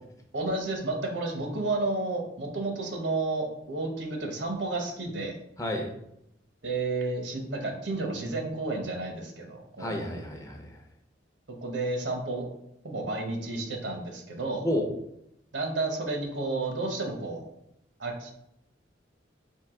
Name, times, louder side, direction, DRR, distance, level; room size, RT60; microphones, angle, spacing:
voice 1, 0.3-5.4 6.6-10.1 11.6-12.5 12.8-14.6 15.5-17.4 18.0-18.3, right 2 dB, 70° right, 3 dB, 0.9 m, -31 dB
voice 2, 5.6-5.9 9.8-10.8 14.6-14.9, left 1 dB, 15° left, 2 dB, 0.6 m, -30 dB
4.6 x 2.7 x 3.6 m, 0.80 s
head